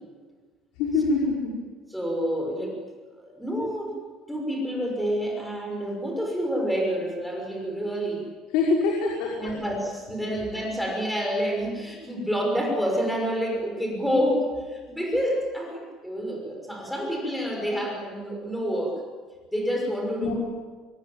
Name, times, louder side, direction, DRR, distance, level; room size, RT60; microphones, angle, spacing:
voice 1, 0.7-1.5 8.5-9.5 10.3-10.4 20.2-20.3, left 3 dB, 80° left, -2 dB, 5.7 m, -24 dB
voice 2, 1.9-2.8 3.1-4.0 4.3-8.2 9.4-19.0 19.5-20.3, equal, ahead, 0 dB, 6.1 m, -28 dB
25.0 x 23.5 x 9.0 m, 1.4 s
cardioid pair, 170°, 0 cm